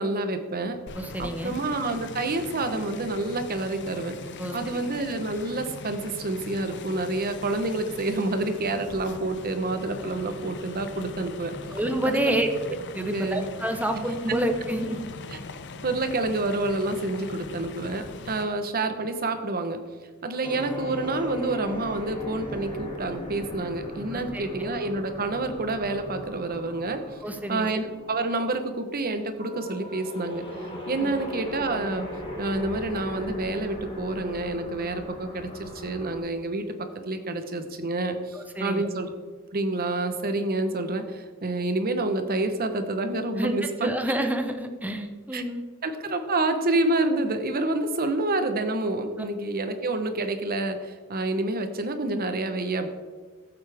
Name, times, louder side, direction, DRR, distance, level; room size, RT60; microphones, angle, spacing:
voice 1, 0.0-0.8 1.2-4.2 4.5-11.5 12.0-12.4 13.1-13.5 13.9-14.1 15.3-15.4 15.8-19.8 20.2-27.2 27.5-30.4 30.9-32.1 32.4-36.8 37.0-39.1 39.5-43.9 45.3-45.4 45.8-52.9, right 2 dB, 45° right, 7 dB, 1.0 m, -28 dB
sound 1, 0.9-18.4, left 3 dB, 55° left, 0.7 m, -41 dB
voice 2, 1.0-1.5 4.4-4.9 11.7-12.5 12.9-15.0 18.4-18.5 24.1-24.7 27.2-27.7 31.0-31.1 38.6-38.9 43.4-45.6, right 1 dB, 5° right, 5 dB, 0.8 m, -29 dB
sound 2, 20.4-36.2, left 1 dB, 25° left, 2.4 m, -39 dB
14.0 x 8.3 x 3.5 m, 1.4 s
head